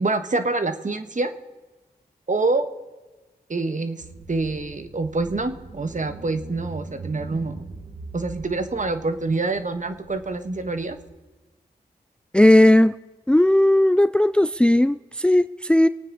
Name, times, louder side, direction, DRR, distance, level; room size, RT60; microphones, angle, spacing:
voice 1, 0.0-1.3 2.3-2.7 3.5-7.7 8.1-11.0, right 3 dB, 45° right, 9 dB, 1.5 m, -26 dB
Car / Engine, 4.0-11.0, right 3 dB, 70° right, 2.0 m, -42 dB
voice 2, 12.3-12.9 13.3-15.9, left 1 dB, 5° left, 15 dB, 0.4 m, -16 dB
25.0 x 9.2 x 4.1 m, 1.2 s
cardioid pair, 40°, 17 cm